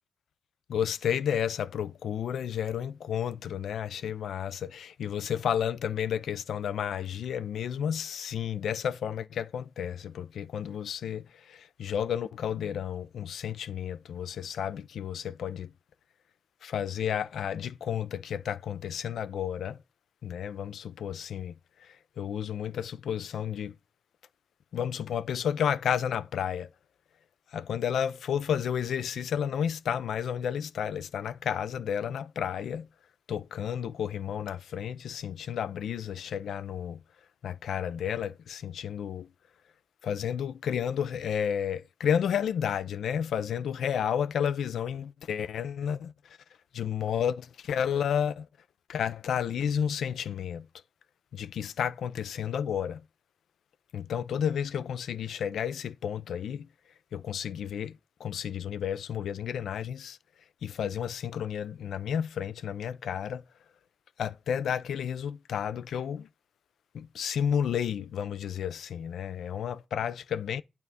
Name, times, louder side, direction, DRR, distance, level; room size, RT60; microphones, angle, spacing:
voice 1, 0.7-15.7 16.6-19.8 20.2-23.8 24.7-26.7 27.5-32.9 33.3-37.0 37.4-39.3 40.0-46.4 46.7-48.5 48.9-50.7 51.3-53.0 53.9-56.7 57.1-60.2 60.6-63.4 64.2-66.3 66.9-70.6, left 8 dB, 85° left, 0.4 m, -32 dB
9.1 x 3.6 x 3.9 m
cardioid pair, 55°, 0 cm